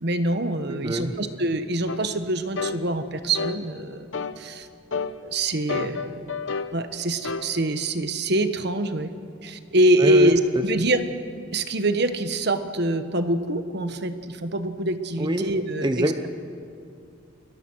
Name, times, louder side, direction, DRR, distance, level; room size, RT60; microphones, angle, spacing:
voice 1, 0.0-4.1 4.4-4.7 5.2-6.3 6.7-9.1 9.4-11.0 11.5-16.1, right 1 dB, 55° right, 9 dB, 1.3 m, -24 dB
voice 2, 0.7-1.2 10.0-10.3 15.2-15.5 15.8-16.3, right 1 dB, 20° right, 7 dB, 0.9 m, -25 dB
sound 1, 1.9-2.0 2.6-2.8 3.3-3.6 4.1-4.4 4.9-5.2 5.7-6.7 7.2-7.5, left 5 dB, 65° left, 1.0 m, -29 dB
29.5 x 22.5 x 6.4 m, 2.5 s
head